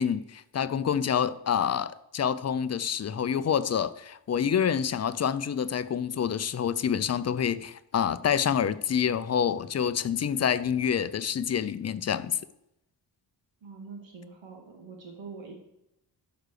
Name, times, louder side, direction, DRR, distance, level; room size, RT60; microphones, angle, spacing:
voice 1, 0.0-12.4, left 8 dB, 40° left, 0.4 m, -27 dB
voice 2, 13.6-15.6, right 4 dB, 85° right, 2.2 m, -44 dB
11.5 x 5.1 x 6.6 m
wide cardioid pair, 175°, 44 cm